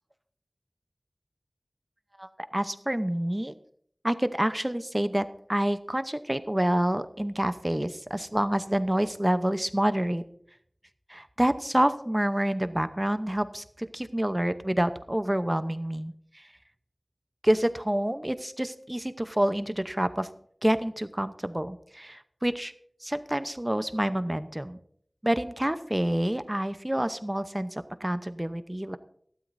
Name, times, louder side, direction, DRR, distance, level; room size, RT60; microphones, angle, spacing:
voice 1, 2.2-3.5 4.0-5.2 5.5-10.2 11.1-16.4 17.4-20.3 20.6-22.7 23.0-24.8 25.2-29.0, right 1 dB, 20° right, 12 dB, 0.7 m, -28 dB
18.0 x 12.5 x 2.7 m, 0.65 s
wide cardioid pair, 40°, 0 cm